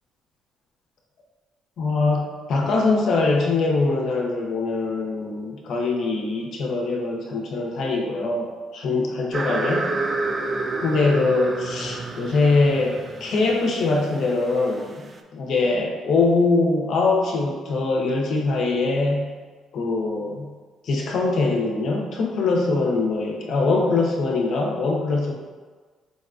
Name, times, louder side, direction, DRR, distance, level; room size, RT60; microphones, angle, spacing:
voice 1, 1.8-9.9 10.8-19.3 19.7-20.5 20.8-25.3, left 3 dB, 60° left, 0 dB, 0.6 m, -23 dB
sound 1, 9.3-15.2, right 2 dB, 35° right, 0.3 m, -30 dB
4.0 x 2.2 x 2.4 m, 1.4 s
hypercardioid pair, 50°, 0 cm